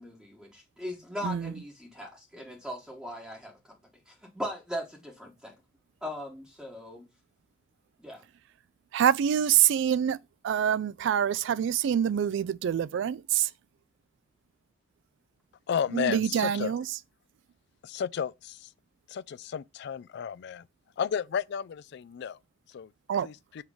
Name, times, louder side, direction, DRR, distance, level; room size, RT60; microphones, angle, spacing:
voice 1, 0.0-3.6 4.0-5.5 6.0-7.1 8.0-8.2, equal, 5° right, 1.3 m, -39 dB
voice 2, 8.9-10.2 10.4-13.5 15.9-16.9 23.1-23.3, right 9 dB, 65° right, 0.3 m, -26 dB
voice 3, 15.7-16.7 17.8-18.7 19.1-20.7 21.0-22.4 22.7-22.9 23.2-23.3, left 7 dB, 60° left, 0.3 m, -32 dB
7.2 x 3.1 x 4.9 m
head